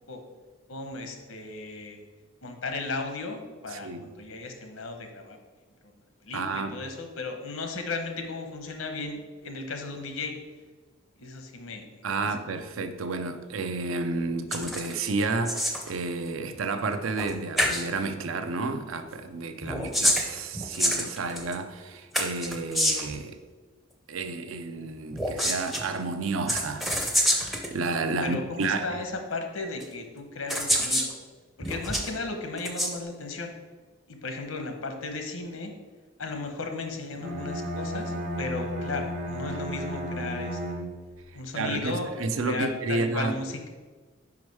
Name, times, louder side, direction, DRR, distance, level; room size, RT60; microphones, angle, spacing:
voice 1, 0.7-2.0 2.4-5.4 5.8-5.9 6.2-10.4 11.2-12.3 19.6-19.9 28.1-31.2 31.6-33.5 34.1-35.7 36.2-40.8 41.3-42.1 42.4-43.7, left 3 dB, 80° left, 0.9 m, -35 dB
voice 2, 3.7-4.1 6.3-6.7 12.0-23.4 24.1-28.9 41.3-43.3, right 3 dB, 75° right, 0.5 m, -31 dB
sound 1, 14.5-14.9 15.2-15.9 17.2-17.3 17.6-17.8 19.6-21.5 22.1-23.2 25.1-25.8 26.5-27.7 28.6-28.7 29.8-29.9 30.5-31.1 31.6-32.1 32.6-32.9, equal, ahead, 0.5 m, -26 dB
Bowed string instrument, 37.2-41.2, equal, 35° right, 0.8 m, -33 dB
5.3 x 4.8 x 4.7 m
head